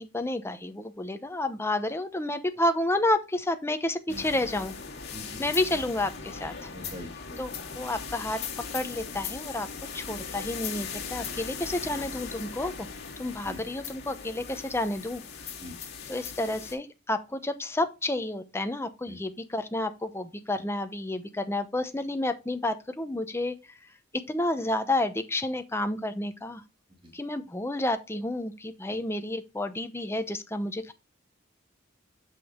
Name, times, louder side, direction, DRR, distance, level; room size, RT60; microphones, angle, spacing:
voice 1, 0.0-4.8 5.4-6.7 7.4-8.4 8.7-9.7 9.9-12.9 13.2-15.2 16.1-23.8 24.1-26.6 27.1-30.9, left 1 dB, 15° left, 0.8 m, -30 dB
sound 1, 4.1-16.7, left 6 dB, 60° left, 2.3 m, -39 dB
voice 2, 5.1-5.8 6.7-7.4 13.4-13.6 15.6-15.8 19.1-19.2 27.0-27.1, left 1 dB, 25° right, 2.0 m, -44 dB
8.2 x 6.2 x 3.6 m
head